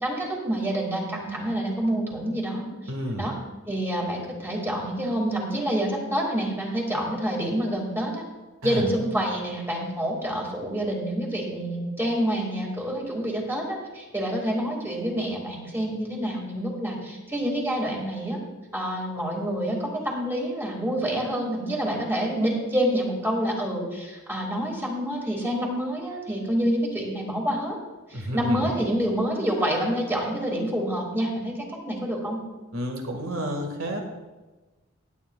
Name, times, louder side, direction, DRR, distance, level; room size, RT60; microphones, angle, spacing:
voice 1, 0.0-2.7 3.2-3.3 3.7-8.2 8.6-18.4 18.7-27.8 28.1-32.4, equal, 10° right, -1 dB, 2.0 m, -27 dB
voice 2, 2.9-3.3 8.6-8.8 28.1-28.7 32.7-34.0, equal, 85° right, 3 dB, 1.8 m, -30 dB
17.5 x 8.8 x 2.3 m, 1.2 s
head